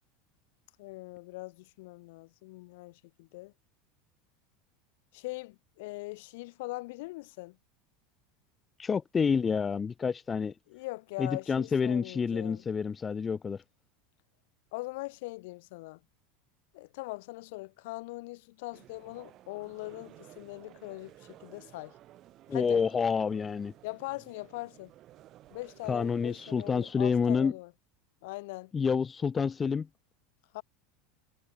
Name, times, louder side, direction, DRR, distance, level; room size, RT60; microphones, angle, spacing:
voice 1, 0.8-3.5 5.1-7.6 10.7-12.6 14.7-16.0 16.7-21.9 22.5-22.8 23.8-24.9 25.5-27.7 28.2-28.7 30.5-30.6, left 22 dB, 70° left, 3.7 m, -41 dB
voice 2, 8.8-10.5 11.2-13.6 22.5-23.7 25.9-27.5 28.7-29.9, left 6 dB, 20° left, 1.0 m, -28 dB
sound 1, 18.7-26.9, right 14 dB, 45° right, 6.6 m, -55 dB
supercardioid pair, 120°, 0 cm